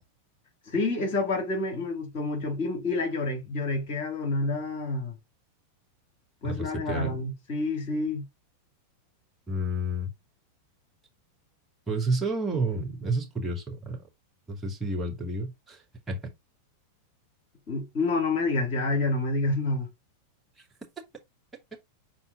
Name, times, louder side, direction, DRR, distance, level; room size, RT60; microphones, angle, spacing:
voice 1, 0.7-5.2 6.4-8.3 17.7-19.9, left 2 dB, 45° left, 3.7 m, -28 dB
voice 2, 6.4-7.2 9.5-10.1 11.9-14.0 14.5-15.8 16.1-16.2, right 1 dB, 10° right, 2.5 m, -30 dB
6.0 x 4.3 x 3.9 m
figure-of-eight pair, 90°, 0 cm